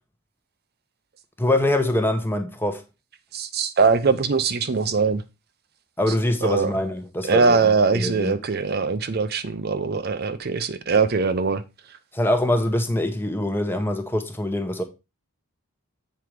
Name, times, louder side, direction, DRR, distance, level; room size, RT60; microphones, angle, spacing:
voice 1, 1.4-2.8 6.0-8.4 12.1-14.8, left 1 dB, 10° left, 0.9 m, -24 dB
voice 2, 3.3-5.2 6.4-6.7 7.3-11.6, right 4 dB, 45° right, 0.5 m, -21 dB
7.7 x 4.6 x 4.9 m
head